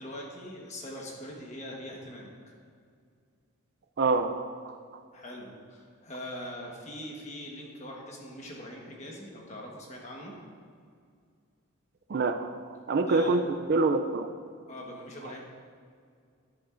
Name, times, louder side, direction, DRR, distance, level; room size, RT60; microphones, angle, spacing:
voice 1, 0.0-2.3 5.1-10.4 13.0-13.4 14.7-15.4, left 1 dB, 30° left, -1 dB, 1.3 m, -42 dB
voice 2, 4.0-4.7 12.1-12.5 12.9-14.3, right 3 dB, 50° right, 7 dB, 0.4 m, -26 dB
10.0 x 10.0 x 2.5 m, 2.2 s
head